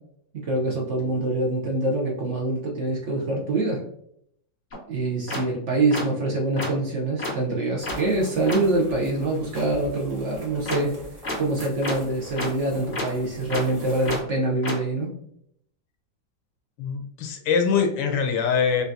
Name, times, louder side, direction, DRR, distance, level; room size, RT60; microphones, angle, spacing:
voice 1, 0.3-3.8 4.9-11.0 11.4-15.1, right 2 dB, 60° right, -2 dB, 0.7 m, -25 dB
sound 1, 4.7-4.8 5.3-5.4 5.9-6.0 6.6-6.7 7.2-7.3 7.8-7.9 8.5-8.6 10.6-10.8 11.2-11.3 11.8-11.9 12.4-12.5 12.9-13.0 13.5-13.6 14.0-14.2 14.6-14.7, left 2 dB, 40° left, 1.9 m, -28 dB
sound 2, 7.8-14.2, right 1 dB, 20° right, 1.0 m, -43 dB
voice 2, 16.8-18.8, left 6 dB, 85° left, 4 dB, 1.5 m, -23 dB
5.4 x 2.5 x 2.6 m, 0.72 s
omnidirectional pair, 2.0 m